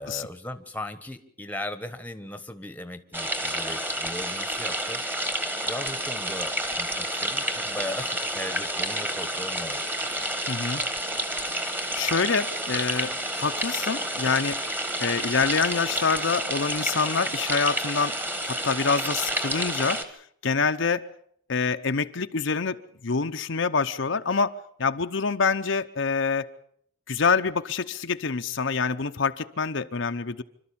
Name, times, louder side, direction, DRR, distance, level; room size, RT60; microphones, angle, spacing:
voice 1, 0.0-5.1 5.7-10.2, left 1 dB, 10° left, 11 dB, 1.2 m, -38 dB
sound 1, 3.1-20.0, right 1 dB, 10° right, 1.6 m, -29 dB
voice 2, 10.5-10.8 11.6-14.6 15.0-18.1 18.4-20.0 20.4-21.1 21.5-22.8 23.0-26.5 27.1-30.4, left 5 dB, 60° left, 8 dB, 0.8 m, -26 dB
26.5 x 13.0 x 8.6 m, 0.66 s
head